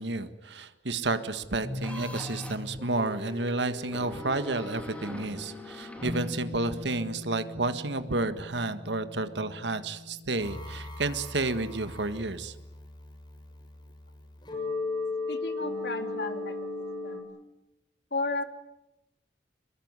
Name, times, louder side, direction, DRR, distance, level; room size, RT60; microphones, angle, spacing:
voice 1, 0.0-12.5, right 2 dB, 90° right, 11 dB, 1.7 m, -31 dB
sound 1, 1.6-17.2, left 3 dB, 25° left, 6.5 m, -39 dB
sound 2, 1.8-2.7 3.8-6.9, left 1 dB, 5° left, 3.4 m, -43 dB
voice 2, 15.3-16.6 17.0-17.3 18.1-18.4, left 3 dB, 65° left, 7 dB, 3.0 m, -33 dB
26.0 x 21.5 x 9.7 m, 0.92 s
head